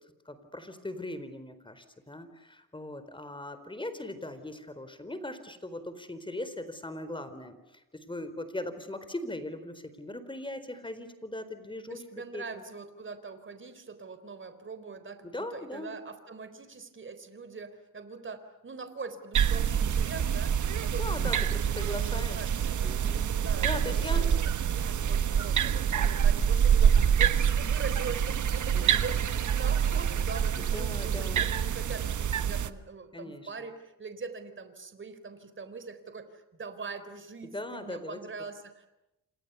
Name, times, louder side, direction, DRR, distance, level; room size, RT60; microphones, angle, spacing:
voice 1, 0.2-12.0 12.3-12.6 15.2-15.9 21.0-22.5 22.8-23.2 23.6-24.3 28.7-29.0 30.6-31.5 33.1-33.7 37.4-38.2, left 1 dB, 15° left, 11 dB, 4.2 m, -39 dB
voice 2, 11.9-24.4 24.7-38.9, right 4 dB, 35° right, 10 dB, 4.0 m, -42 dB
sound 1, 19.3-32.7, right 8 dB, 60° right, 1.3 m, -26 dB
29.5 x 27.5 x 7.0 m, 0.91 s
cardioid pair, 110°, 33 cm